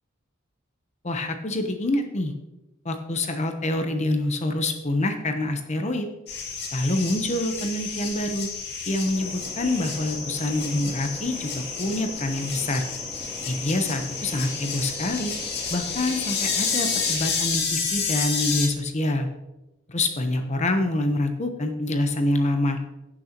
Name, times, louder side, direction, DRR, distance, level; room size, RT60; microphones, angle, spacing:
voice 1, 1.0-2.3 2.8-6.1 6.7-8.5 8.9-12.8 13.5-15.3 15.7-19.3 19.9-22.8, left 1 dB, 35° left, 6 dB, 0.9 m, -26 dB
sound 1, 6.3-18.7, left 5 dB, 55° left, 2.2 m, -30 dB
sound 2, 9.1-17.1, equal, 15° right, 1.6 m, -42 dB
16.0 x 6.6 x 2.9 m, 0.98 s
head